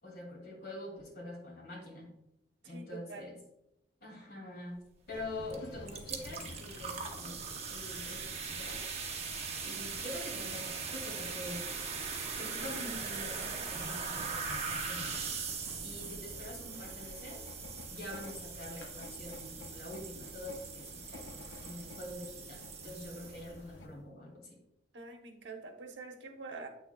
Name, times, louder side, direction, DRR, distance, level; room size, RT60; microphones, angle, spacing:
voice 1, 0.0-2.1 2.6-3.4 4.0-4.8 5.1-8.8 9.6-11.7 12.4-15.3 15.8-17.4 17.9-21.2 21.6-24.6, left 1 dB, 60° left, -2 dB, 2.5 m, -45 dB
voice 2, 2.6-3.3 24.9-26.7, right 3 dB, 80° right, 4 dB, 1.0 m, -46 dB
sound 1, 5.1-23.9, left 2 dB, 90° left, 0.7 m, -50 dB
sound 2, 5.5-5.6 5.9-23.6, right 5 dB, 35° right, 0.8 m, -41 dB
7.9 x 6.3 x 2.3 m, 0.84 s
head